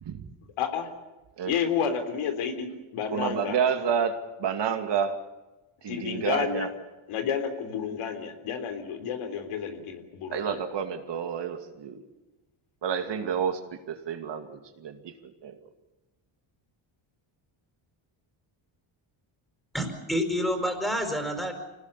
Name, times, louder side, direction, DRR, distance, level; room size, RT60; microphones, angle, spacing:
voice 1, 0.6-0.9 1.5-2.7 2.9-3.6 5.9-6.7 7.1-10.6, left 7 dB, 85° left, 7 dB, 3.7 m, -30 dB
voice 2, 3.1-5.2 5.8-6.7 10.3-12.0 12.8-15.6, right 7 dB, 55° right, 6 dB, 2.5 m, -30 dB
voice 3, 19.7-21.5, equal, ahead, 5 dB, 5.0 m, -28 dB
26.0 x 19.0 x 8.4 m, 1.1 s
cardioid pair, 120°, 49 cm